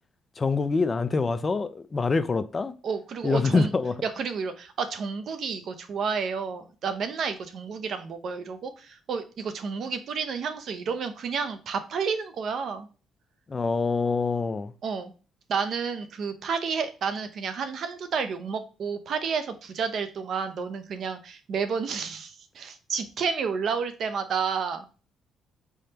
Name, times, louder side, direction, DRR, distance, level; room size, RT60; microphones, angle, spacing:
voice 1, 0.4-2.7 3.2-3.9 13.5-14.7, left 4 dB, 30° left, 0.4 m, -25 dB
voice 2, 2.8-3.7 4.0-12.9 14.8-15.1 15.5-24.9, right 5 dB, 65° right, 0.6 m, -30 dB
4.3 x 3.5 x 2.8 m
cardioid pair, 90°, 0 cm